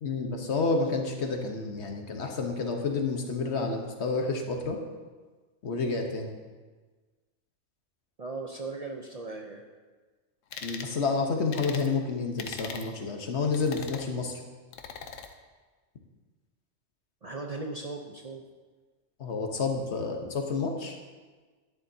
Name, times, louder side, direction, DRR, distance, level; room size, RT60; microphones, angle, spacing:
voice 1, 0.0-4.8 5.6-6.3 10.6-14.4 19.2-21.0, left 4 dB, 65° left, 3 dB, 1.3 m, -29 dB
voice 2, 8.2-9.7 17.2-18.4, right 3 dB, 40° right, 2 dB, 0.6 m, -38 dB
sound 1, 10.5-10.9 11.5-11.9 12.4-12.9 13.5-14.1 14.7-15.3, left 6 dB, 85° left, 1.1 m, -40 dB
11.5 x 10.5 x 2.7 m, 1.4 s
omnidirectional pair, 1.3 m